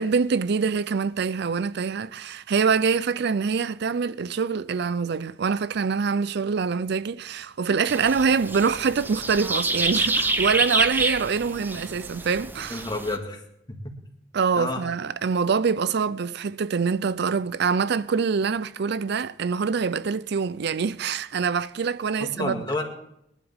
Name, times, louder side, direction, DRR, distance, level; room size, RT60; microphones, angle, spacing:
voice 1, 0.0-12.8 14.3-22.6, right 5 dB, 65° right, 0.5 m, -25 dB
sound 1, 7.9-13.2, right 2 dB, 10° right, 0.7 m, -27 dB
voice 2, 12.7-13.4 13.7-13.9 14.6-14.8 22.2-22.8, left 2 dB, 25° left, 2.2 m, -30 dB
22.0 x 11.5 x 3.6 m
head